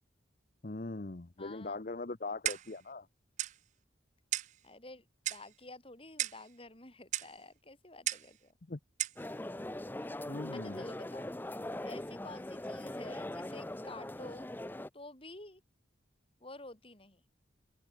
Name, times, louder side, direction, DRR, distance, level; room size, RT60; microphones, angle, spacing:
voice 1, 0.6-3.1 8.6-8.8 10.3-10.9, left 3 dB, 45° left, 0.9 m, -41 dB
voice 2, 1.4-1.8 4.6-8.6 10.5-11.4 11.8-14.5 14.9-15.6 16.4-17.2, left 2 dB, 30° left, 4.6 m, -50 dB
Clock, 2.5-2.8 3.4-3.6 4.3-4.6 5.3-5.5 6.2-6.5 7.1-7.3 8.1-8.3 9.0-9.2, right 13 dB, 40° right, 0.4 m, -35 dB
sound 1, 9.2-14.9, left 1 dB, 10° left, 0.5 m, -41 dB
head